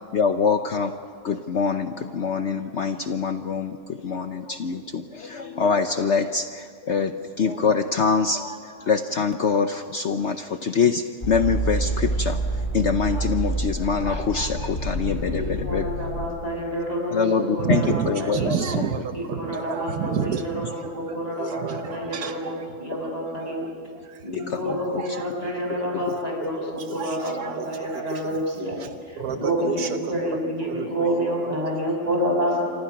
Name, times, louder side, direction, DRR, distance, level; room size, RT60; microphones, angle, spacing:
voice 1, 0.1-0.9 1.2-3.7 4.0-12.4 12.7-15.9 17.1-18.8 24.3-25.0, left 5 dB, 55° left, 7 dB, 1.0 m, -24 dB
sound 1, 11.2-16.3, right 2 dB, 30° left, 5.5 m, -27 dB
voice 2, 15.3-18.5 19.1-23.7 24.2-28.8 29.4-32.7, equal, 25° right, -1 dB, 6.5 m, -28 dB
voice 3, 17.6-23.1 23.6-26.2 26.5-28.3 28.8-31.6, right 7 dB, 80° right, 7 dB, 1.5 m, -32 dB
28.5 x 25.0 x 5.9 m, 2.1 s
omnidirectional pair, 1.6 m